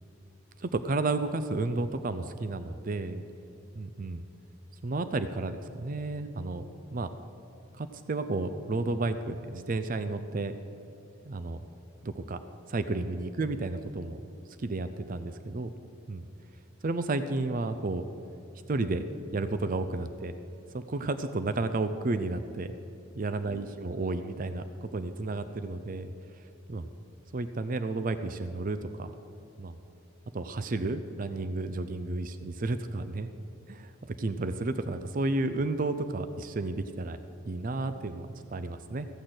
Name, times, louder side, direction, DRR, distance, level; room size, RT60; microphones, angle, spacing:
voice 1, 0.6-3.2 3.7-4.2 4.8-6.6 6.9-7.2 7.7-10.6 11.2-11.6 12.0-12.4 12.7-14.2 14.6-15.7 16.1-16.3 16.8-18.1 18.7-19.0 19.3-20.3 20.7-22.7 23.1-26.1 26.7-26.8 27.3-29.1 29.6-29.8 30.3-33.3 33.7-33.9 34.2-37.2 37.4-39.1, right 2 dB, 40° right, 10 dB, 0.5 m, -32 dB
15.0 x 6.5 x 7.8 m, 2.8 s
head